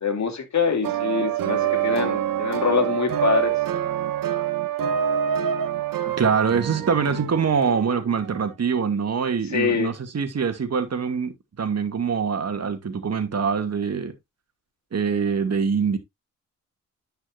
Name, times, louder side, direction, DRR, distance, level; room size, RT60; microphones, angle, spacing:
voice 1, 0.0-3.6 9.5-9.9, left 5 dB, 55° left, 2.6 m, -24 dB
sound 1, 0.8-8.4, right 10 dB, 75° right, 1.5 m, -26 dB
voice 2, 6.1-14.1 14.9-16.0, right 6 dB, 50° right, 2.3 m, -24 dB
10.5 x 5.8 x 2.5 m
supercardioid pair, 50°, 34 cm